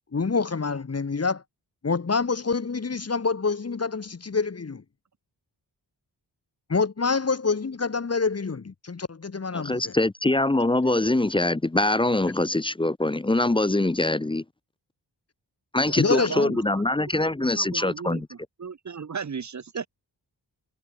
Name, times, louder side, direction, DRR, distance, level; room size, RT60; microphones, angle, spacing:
voice 1, 0.1-1.4 1.8-4.8 6.7-9.9 16.0-16.6, left 4 dB, 35° left, 0.9 m, -26 dB
voice 2, 9.5-14.4 15.7-18.3, left 2 dB, 10° left, 0.5 m, -23 dB
voice 3, 15.8-16.8 17.4-19.9, right 6 dB, 40° right, 0.7 m, -35 dB
wide cardioid pair, 55°, 45 cm